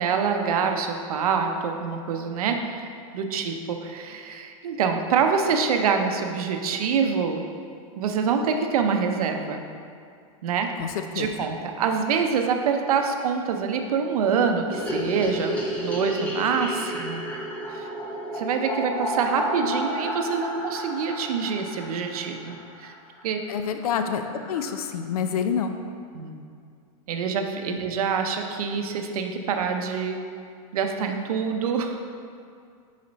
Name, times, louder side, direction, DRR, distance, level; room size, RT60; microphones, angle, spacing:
voice 1, 0.0-7.5 8.0-9.6 10.4-10.7 11.1-17.2 17.7-17.9 18.3-22.9 23.2-23.4 26.1-26.5 27.1-30.2 30.7-32.0, right 6 dB, 80° right, 5 dB, 0.7 m, -26 dB
voice 2, 10.8-11.3 23.5-24.2 24.5-25.8 27.7-27.8, left 7 dB, 85° left, 7 dB, 0.6 m, -27 dB
sound 1, 14.7-22.9 23.2-23.3 23.5-23.6 23.9-24.0 24.2-24.8, equal, 10° left, 0.6 m, -32 dB
6.4 x 5.0 x 4.0 m, 2.3 s
supercardioid pair, 180°, 19 cm